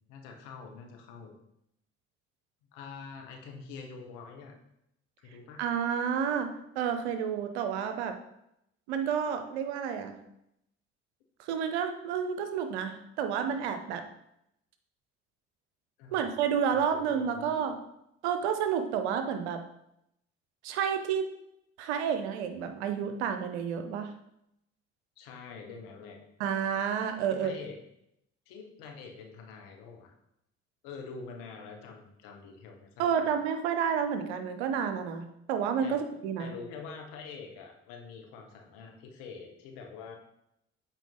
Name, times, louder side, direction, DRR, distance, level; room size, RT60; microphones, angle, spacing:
voice 1, 0.1-1.3 2.7-4.5 5.2-5.6 16.0-16.3 16.7-17.6 25.2-26.2 27.3-27.8 28.5-30.1 30.8-33.3 35.8-36.0 36.4-40.1, left 5 dB, 80° left, 3 dB, 1.3 m, -45 dB
voice 2, 5.6-8.2 8.9-10.2 11.4-14.0 16.1-17.8 18.2-19.6 20.6-21.3 21.8-24.1 26.4-27.5 33.0-36.5, right 7 dB, 85° right, 7 dB, 0.8 m, -30 dB
8.2 x 4.4 x 3.9 m, 0.80 s
hypercardioid pair, 50°, 32 cm